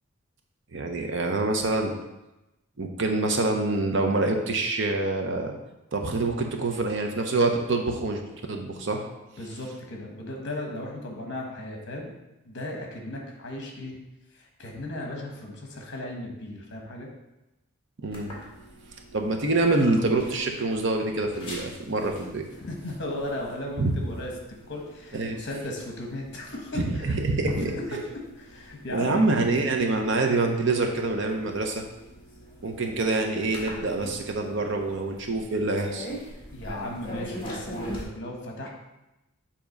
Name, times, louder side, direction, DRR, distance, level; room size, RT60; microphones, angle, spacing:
voice 1, 0.7-1.9 2.8-5.5 5.9-9.0 18.0-18.3 19.1-22.4 23.8-23.9 25.1-25.4 26.7-27.7 28.9-31.9 32.6-36.1, right 2 dB, 55° right, 3 dB, 0.7 m, -26 dB
voice 2, 9.4-12.1 12.4-14.0 14.3-17.1 22.6-24.3 24.7-27.2 27.5-29.2 29.5-29.6 36.5-38.7, left 1 dB, 50° left, 0 dB, 1.2 m, -36 dB
sound 1, 18.1-38.0, equal, 25° left, 1.3 m, -44 dB
7.2 x 2.9 x 5.1 m, 0.94 s
head